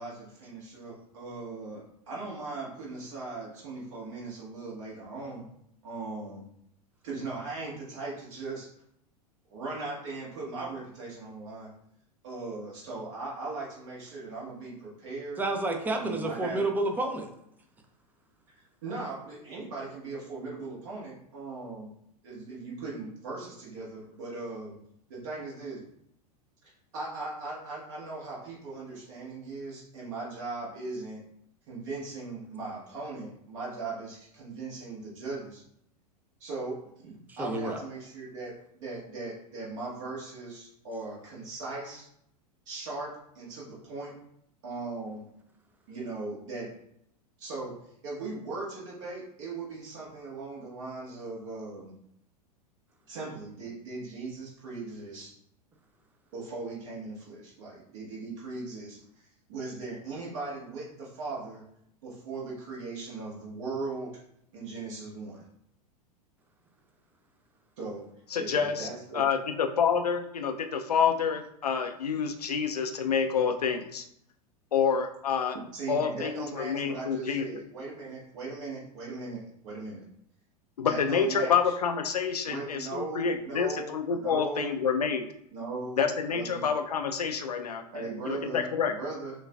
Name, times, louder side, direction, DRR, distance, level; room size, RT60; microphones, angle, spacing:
voice 1, 0.0-5.4 5.8-6.4 7.0-8.7 9.5-11.7 12.2-15.4 15.9-16.6 18.8-21.9 22.2-24.8 25.1-25.8 26.6-31.2 31.7-35.6 36.4-42.1 42.7-44.1 44.6-45.2 45.9-46.7 47.4-47.7 48.0-51.9 53.1-55.3 56.3-61.6 62.0-64.1 64.5-65.4 67.8-68.0 68.4-69.2 75.7-80.0 80.8-81.7 82.5-84.7 85.5-86.7 87.9-89.3, right 3 dB, 50° right, -5 dB, 1.3 m, -39 dB
voice 2, 15.4-17.3 37.3-37.8, right 2 dB, 10° right, 4 dB, 0.5 m, -30 dB
voice 3, 68.3-68.9 69.1-74.0 74.7-75.6 75.9-77.4 80.8-85.3 86.0-88.9, left 6 dB, 75° left, 6 dB, 0.5 m, -28 dB
6.1 x 2.3 x 2.3 m, 0.74 s
figure-of-eight pair, 90°, 20 cm